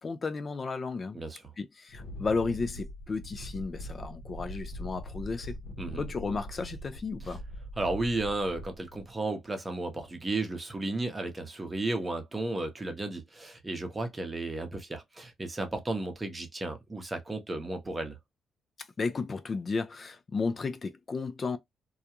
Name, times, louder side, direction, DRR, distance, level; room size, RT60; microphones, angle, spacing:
voice 1, 0.0-1.2 1.6-5.6 6.0-7.4 19.0-21.6, left 4 dB, 35° left, 0.5 m, -33 dB
Wind, 1.9-9.1, equal, 65° left, 1.0 m, -42 dB
voice 2, 7.8-18.2, right 2 dB, 20° right, 0.8 m, -33 dB
2.4 x 2.2 x 2.8 m
cardioid pair, 90°, 0 cm